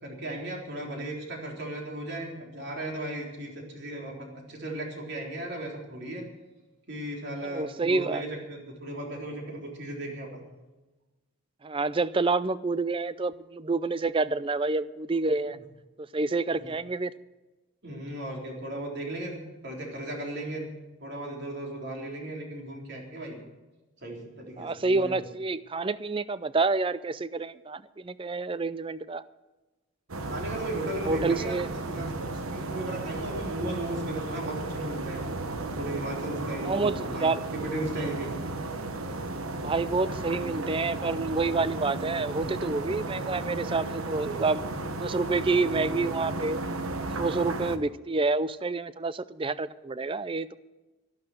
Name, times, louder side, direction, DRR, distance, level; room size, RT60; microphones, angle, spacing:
voice 1, 0.0-6.3 6.9-10.5 15.5-15.6 16.5-16.7 17.8-20.7 21.0-23.4 24.0-25.3 30.2-35.3 35.8-38.3, right 1 dB, 50° right, 0 dB, 3.7 m, -36 dB
voice 2, 7.4-8.2 11.6-15.6 16.1-17.1 24.6-29.2 31.0-31.7 36.6-37.4 39.6-44.7 45.0-46.6 47.2-50.6, right 3 dB, 25° right, 16 dB, 0.4 m, -28 dB
sound 1, 30.1-47.8, right 2 dB, 75° right, 1.2 m, -34 dB
13.0 x 12.0 x 6.4 m, 1.1 s
head